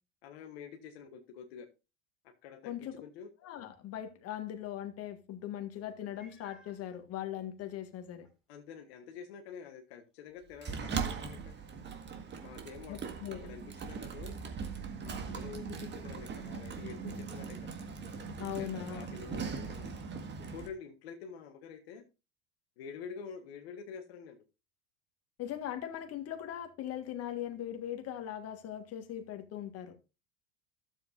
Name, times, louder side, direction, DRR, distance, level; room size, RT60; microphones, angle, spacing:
voice 1, 0.2-1.7 2.2-3.3 8.5-11.5 12.4-13.1 13.4-14.3 15.0-17.7 18.4-19.9 20.4-22.0 22.8-24.4, left 6 dB, 75° left, 1.3 m, -48 dB
voice 2, 2.6-3.0 3.4-8.3 12.9-13.5 18.4-19.1 25.4-30.0, left 11 dB, 50° left, 1.7 m, -40 dB
Meow, 6.1-6.8 7.6-7.7 8.2-8.3 12.3-12.4, equal, ahead, 3.1 m, -58 dB
Sliding door, 10.6-20.7, right 5 dB, 35° right, 1.7 m, -40 dB
12.5 x 7.5 x 2.6 m
hypercardioid pair, 90°, 32 cm